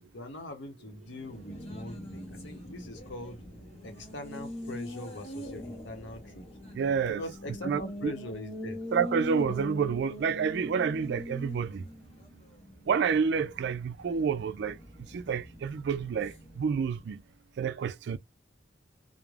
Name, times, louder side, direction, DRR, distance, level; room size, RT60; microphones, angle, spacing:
voice 1, 0.1-3.4 3.8-6.4 7.2-8.8, left 1 dB, 75° left, 0.8 m, -42 dB
Race car auto racing, 0.9-17.2, left 1 dB, 35° left, 1.0 m, -43 dB
voice 2, 6.7-7.2 7.6-8.1 8.9-11.9 12.9-17.2 17.6-18.2, right 6 dB, 65° right, 0.3 m, -29 dB
2.4 x 2.1 x 3.2 m
head